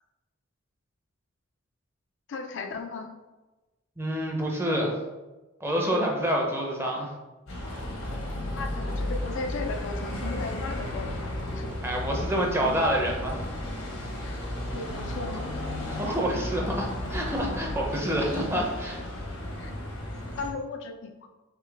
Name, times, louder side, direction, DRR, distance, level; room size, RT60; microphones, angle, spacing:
voice 1, 2.3-3.1 8.5-11.7 14.2-14.4 14.7-15.5 19.6-19.7 20.4-21.3, left 3 dB, 60° left, 5 dB, 0.4 m, -36 dB
voice 2, 4.0-4.9 5.6-7.1 11.8-13.5 15.8-19.0, equal, 10° right, -1 dB, 0.6 m, -27 dB
Bus, 7.5-20.5, left 1 dB, 80° left, 1.0 m, -34 dB
3.7 x 3.2 x 3.4 m, 1.1 s
head